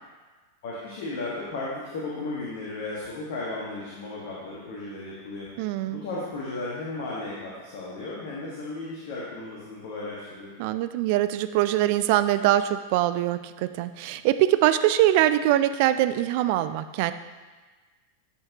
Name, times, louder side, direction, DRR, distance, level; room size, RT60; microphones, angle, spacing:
voice 1, 0.6-5.5 5.9-10.5, left 2 dB, 55° left, -6 dB, 1.5 m, -35 dB
voice 2, 5.6-6.0 10.6-17.1, right 13 dB, 45° right, 12 dB, 0.4 m, -23 dB
11.0 x 5.7 x 2.9 m, 1.3 s
figure-of-eight pair, 90°, 0 cm